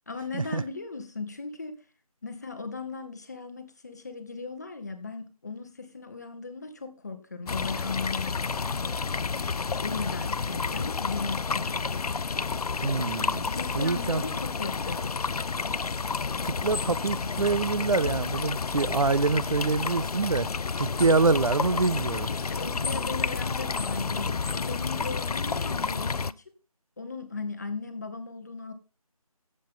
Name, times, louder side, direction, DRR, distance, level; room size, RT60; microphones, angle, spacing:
voice 1, 0.1-1.8 2.2-8.8 9.8-12.2 13.5-15.2 22.3-26.4 27.0-28.7, left 4 dB, 25° left, 1.0 m, -37 dB
sound 1, 7.5-26.3, left 5 dB, 75° left, 0.5 m, -30 dB
voice 2, 12.8-13.5 13.8-14.2 16.4-20.5 20.8-22.3, right 4 dB, 60° right, 0.5 m, -25 dB
14.5 x 7.5 x 3.7 m
figure-of-eight pair, 165°, 19 cm